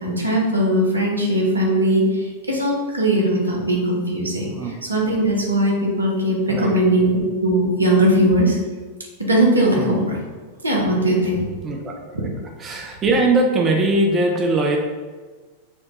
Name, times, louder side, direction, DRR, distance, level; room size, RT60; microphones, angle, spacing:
voice 1, 0.0-4.5 4.9-8.6 9.3-10.0 10.6-11.4 12.1-12.2, right 1 dB, 80° right, -1 dB, 0.8 m, -19 dB
voice 2, 9.8-10.1 11.6-12.3 12.6-14.8, right 2 dB, 25° right, 1 dB, 0.4 m, -21 dB
4.3 x 2.3 x 2.9 m, 1.4 s
figure-of-eight pair, 90°, 0 cm